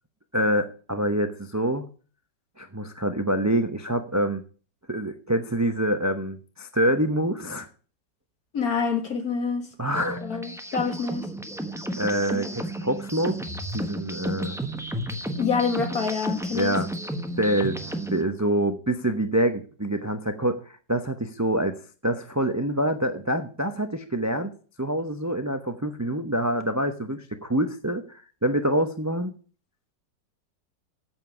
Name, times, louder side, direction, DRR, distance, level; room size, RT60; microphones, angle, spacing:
voice 1, 0.3-1.9 2.6-4.4 4.9-7.7 9.8-10.4 12.0-13.4 13.7-14.6 16.5-16.9 17.4-21.8 22.0-24.5 24.8-29.3, right 1 dB, 25° right, 0.3 m, -26 dB
voice 2, 8.5-9.7 10.2-11.3 15.4-16.8, left 5 dB, 55° left, 2.4 m, -26 dB
sound 1, 9.9-18.2, right 1 dB, ahead, 0.7 m, -33 dB
8.5 x 7.4 x 8.3 m
omnidirectional pair, 1.9 m